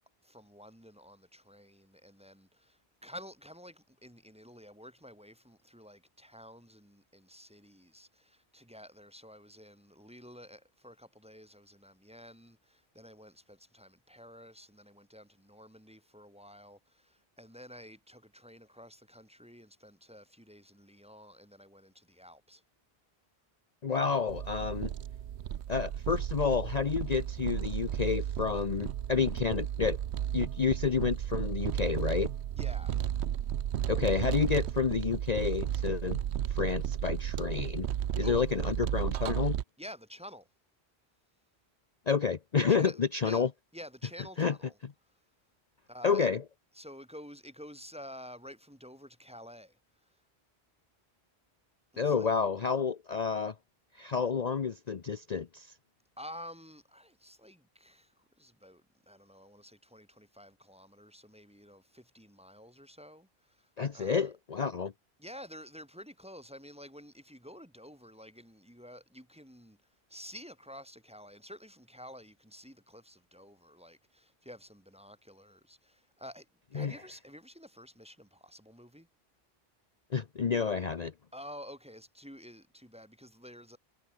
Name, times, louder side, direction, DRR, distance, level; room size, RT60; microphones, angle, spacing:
voice 1, 0.0-22.6 32.6-33.0 38.2-38.5 39.8-40.5 42.6-43.5 43.7-44.8 45.9-46.3 46.7-49.8 51.9-52.3 56.2-64.3 65.2-69.8 70.1-76.5 76.7-79.1 81.3-83.8, equal, 5° right, 1.7 m, -50 dB
voice 2, 23.8-24.9 25.7-30.0 30.3-32.3 33.9-36.2 36.5-37.9 38.2-39.6 42.1-43.5 44.4-44.5 46.0-46.4 52.0-53.5 53.9-55.7 63.8-64.9 76.7-76.9 80.1-81.1, left 6 dB, 40° left, 0.8 m, -30 dB
sound 1, 24.3-39.6, right 10 dB, 90° right, 1.0 m, -33 dB
omnidirectional pair, 1.1 m